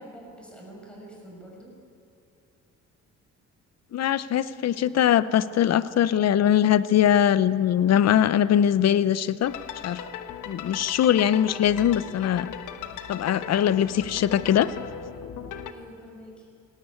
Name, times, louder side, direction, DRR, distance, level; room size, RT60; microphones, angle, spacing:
voice 1, 0.0-1.8 15.6-16.5, equal, 5° left, -2 dB, 6.5 m, -45 dB
voice 2, 3.9-9.5 9.8-10.0 10.5-12.5 13.1-14.7, left 10 dB, 60° left, 16 dB, 0.8 m, -21 dB
sound 1, 9.4-15.7, left 8 dB, 85° left, 1.2 m, -38 dB
19.5 x 17.5 x 8.5 m, 2.6 s
cardioid pair, 90°, 30 cm